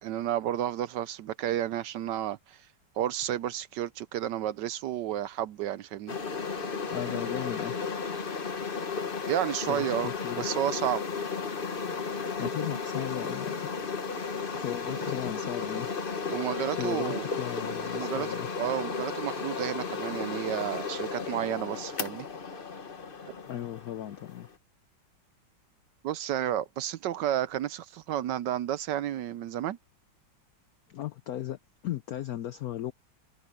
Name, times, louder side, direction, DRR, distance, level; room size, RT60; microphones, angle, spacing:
voice 1, 0.0-2.7 3.0-6.2 9.3-11.0 16.3-17.3 17.9-18.3 18.6-22.3 26.0-29.8, right 12 dB, 70° right, 1.1 m, -31 dB
sound 1, 6.1-24.5, left 5 dB, 30° left, 1.1 m, -34 dB
voice 2, 6.9-7.7 9.7-10.5 12.4-13.6 14.4-16.0 16.8-18.5 23.5-24.5 30.9-31.6 31.8-32.9, left 12 dB, 75° left, 0.8 m, -36 dB
omnidirectional pair, 2.2 m